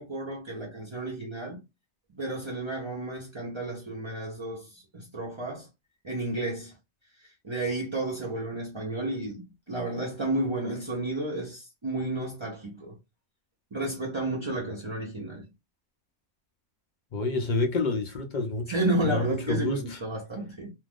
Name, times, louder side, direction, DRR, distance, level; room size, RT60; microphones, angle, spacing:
voice 1, 0.0-1.6 2.1-5.7 6.0-6.7 7.2-13.0 13.7-15.4 18.7-20.7, right 1 dB, 35° right, 0.5 m, -32 dB
voice 2, 17.1-18.8 19.0-20.0, left 3 dB, 70° left, 0.4 m, -28 dB
2.6 x 2.4 x 3.5 m
omnidirectional pair, 1.6 m